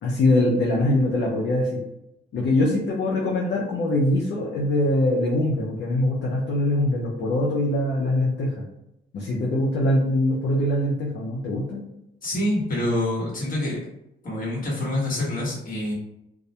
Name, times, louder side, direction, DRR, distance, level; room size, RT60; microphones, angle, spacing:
voice 1, 0.0-1.8 2.3-8.6 9.1-11.8, left 1 dB, 60° left, -4 dB, 0.6 m, -23 dB
voice 2, 12.2-13.8 14.2-15.9, left 1 dB, 45° left, -5 dB, 1.1 m, -26 dB
2.3 x 2.1 x 2.7 m, 0.85 s
cardioid pair, 90°, 20 cm